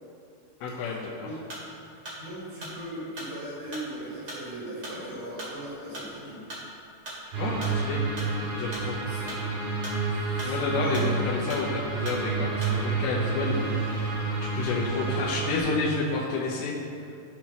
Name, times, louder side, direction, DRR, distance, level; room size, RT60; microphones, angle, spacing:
voice 1, 0.6-1.3 7.4-8.0 8.6-9.0 10.4-14.2 14.4-16.7, left 4 dB, 85° left, -7 dB, 3.5 m, -30 dB
sound 1, 1.5-13.0, right 1 dB, 35° right, 1.7 m, -40 dB
voice 2, 2.2-6.4 9.1-9.5 9.8-11.3, right 1 dB, 80° right, -10 dB, 5.2 m, -39 dB
sound 2, 7.3-15.6, right 4 dB, 65° right, 2.8 m, -29 dB
16.5 x 5.8 x 3.0 m, 2.5 s
omnidirectional pair, 5.7 m